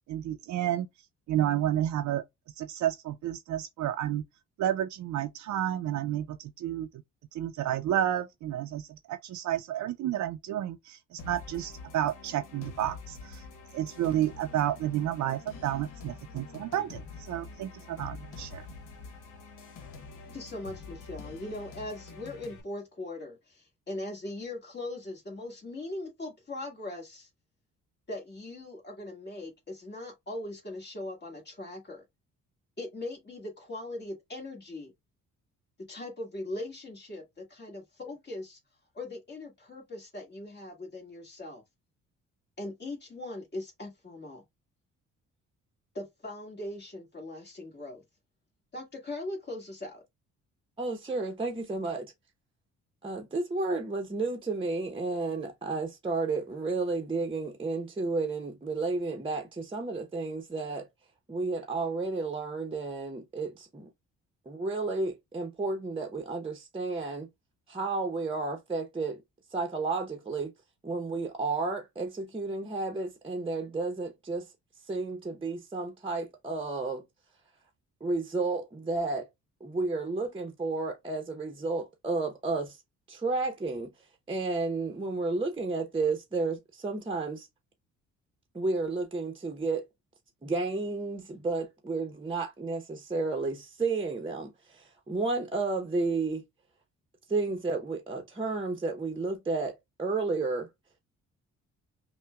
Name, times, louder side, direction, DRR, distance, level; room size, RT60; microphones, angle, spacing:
voice 1, 0.1-0.9 1.3-2.2 2.6-4.2 4.6-6.9 7.3-13.4 13.7-18.6, right 11 dB, 70° right, 0.5 m, -31 dB
sound 1, 11.2-22.6, left 4 dB, 85° left, 1.0 m, -46 dB
voice 2, 20.3-27.3 28.1-32.0 32.8-34.9 35.9-38.6 38.9-41.6 42.6-44.4 45.9-48.0 48.7-50.0, left 2 dB, 35° left, 1.6 m, -40 dB
voice 3, 50.8-52.1 53.0-60.9 61.3-63.9 64.5-67.3 67.7-69.2 69.5-70.5 70.8-74.5 74.9-77.0 78.0-79.3 79.6-82.8 83.1-83.9 84.3-87.5 88.5-89.9 90.4-96.4 97.3-100.7, right 3 dB, 15° right, 0.7 m, -32 dB
5.7 x 2.2 x 2.2 m
cardioid pair, 90°, 30 cm